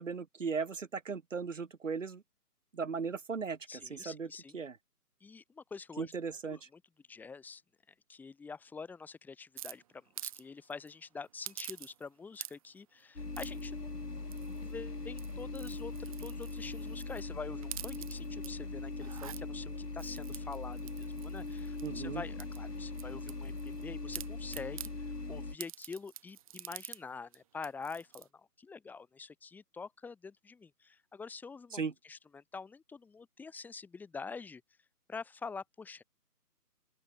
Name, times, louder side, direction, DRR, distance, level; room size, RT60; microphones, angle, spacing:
voice 1, 0.0-2.2 2.7-4.3 4.5-4.8 6.0-6.6 21.8-22.2 31.7-31.9, right 5 dB, 50° right, 5.5 m, -37 dB
voice 2, 3.7-4.6 5.2-6.1 6.5-6.8 7.1-7.6 8.1-14.0 14.6-34.6 35.1-36.0, left 5 dB, 5° left, 4.7 m, -46 dB
sound 1, 9.6-10.4 10.7-10.9 11.4-12.1 12.3-12.8 13.3-13.7 14.3-14.7 15.1-17.2 17.6-18.5 18.9-19.4 20.0-22.0 22.4-23.8 24.1-24.9 25.6-27.0 27.3-27.4 27.6-28.3, right 12 dB, 20° right, 3.1 m, -46 dB
sound 2, 13.2-25.6, left 3 dB, 75° left, 6.4 m, -40 dB
open air
figure-of-eight pair, 150°, 48 cm